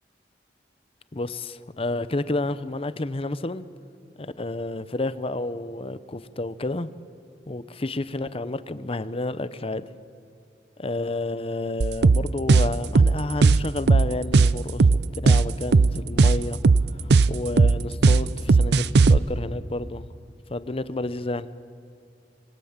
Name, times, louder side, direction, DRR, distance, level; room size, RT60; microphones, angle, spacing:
voice 1, 1.1-3.6 4.2-6.9 7.5-9.8 10.8-16.6 17.0-20.1 20.5-21.5, left 2 dB, 35° left, 0.8 m, -30 dB
sound 1, 11.8-19.2, right 4 dB, 65° right, 0.5 m, -17 dB
26.5 x 21.5 x 7.4 m
head